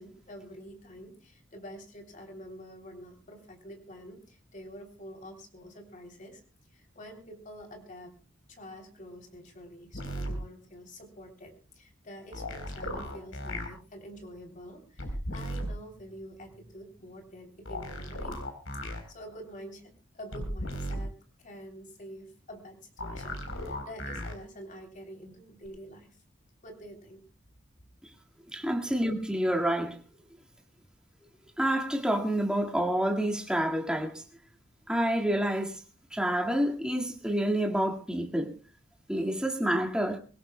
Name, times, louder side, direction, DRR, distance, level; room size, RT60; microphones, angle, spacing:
voice 1, 0.0-6.4 6.7-8.1 8.5-18.4 19.1-26.2 26.6-27.2 28.9-29.0, equal, 40° left, 3.2 m, -47 dB
sound 1, 9.9-10.3 12.3-13.7 15.0-15.7 17.7-19.0 20.3-21.0 23.0-24.3 25.7-25.8, equal, 85° left, 3.9 m, -36 dB
voice 2, 28.5-30.0 31.6-34.2 34.9-35.8 36.1-38.5 39.1-40.2, right 1 dB, 5° right, 1.9 m, -28 dB
24.5 x 17.0 x 2.2 m
head